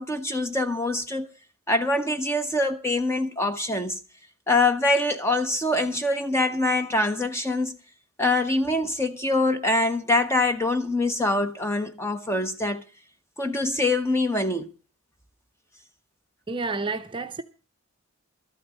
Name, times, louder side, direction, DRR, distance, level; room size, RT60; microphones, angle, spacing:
voice 1, 0.0-1.3 1.7-4.0 4.5-7.8 8.2-12.8 13.4-14.7, left 2 dB, 10° left, 0.8 m, -24 dB
voice 2, 16.5-17.4, right 3 dB, 20° right, 0.7 m, -30 dB
13.0 x 8.4 x 7.4 m
head